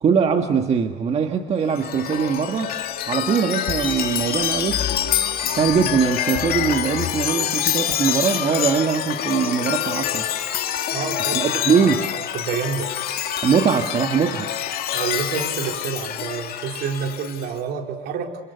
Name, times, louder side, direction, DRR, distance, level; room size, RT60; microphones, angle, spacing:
voice 1, 0.0-2.8 3.1-4.9 5.5-10.3 11.2-12.1 13.4-14.5, right 6 dB, 35° right, 5 dB, 1.6 m, -21 dB
Chime, 1.6-17.5, left 10 dB, 55° left, 2.5 m, -26 dB
voice 2, 10.9-11.8 12.1-12.9 14.9-18.4, right 6 dB, 65° right, 2 dB, 4.3 m, -28 dB
28.0 x 28.0 x 6.9 m, 1.3 s
cardioid pair, 125°, 18 cm